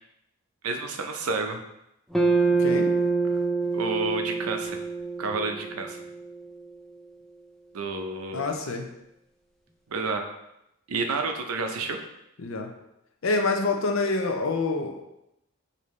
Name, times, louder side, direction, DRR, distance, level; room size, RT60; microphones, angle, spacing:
voice 1, 0.6-1.6 3.7-4.8 5.2-6.0 7.7-8.5 9.9-10.2 10.9-12.0, right 3 dB, 90° right, 5 dB, 0.6 m, -30 dB
sound 1, 2.1-6.5, right 3 dB, ahead, 0.3 m, -26 dB
voice 2, 2.6-2.9 8.3-8.9 12.4-12.7 13.2-15.0, left 3 dB, 70° left, 4 dB, 0.6 m, -26 dB
5.2 x 2.7 x 3.1 m, 0.85 s
head